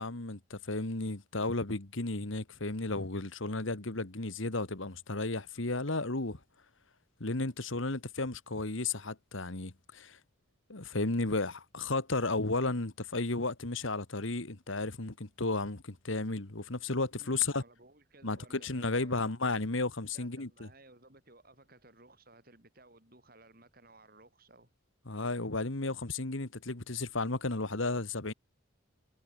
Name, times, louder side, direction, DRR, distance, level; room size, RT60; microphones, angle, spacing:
voice 1, 0.0-6.4 7.2-10.2 10.7-17.6 18.2-20.7 25.1-28.3, left 2 dB, 70° left, 1.9 m, -33 dB
voice 2, 17.2-19.3 20.1-24.7, right 2 dB, 45° right, 6.7 m, -58 dB
head